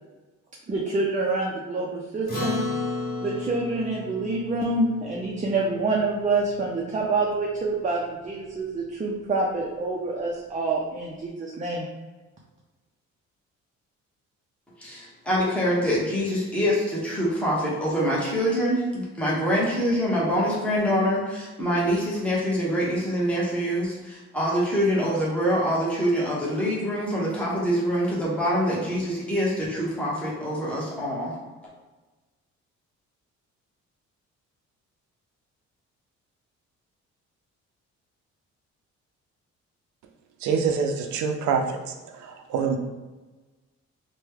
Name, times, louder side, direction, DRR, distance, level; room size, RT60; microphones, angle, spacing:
voice 1, 0.7-2.6 3.2-11.8, right 3 dB, 25° right, -2 dB, 0.5 m, -27 dB
Acoustic guitar, 2.3-7.0, left 2 dB, 30° left, 1.5 m, -33 dB
voice 2, 14.8-31.3, equal, 5° left, -6 dB, 1.0 m, -25 dB
voice 3, 40.4-41.9 42.2-42.8, right 6 dB, 75° right, 4 dB, 0.5 m, -25 dB
3.0 x 2.2 x 3.4 m, 1.2 s
cardioid pair, 90°, 30 cm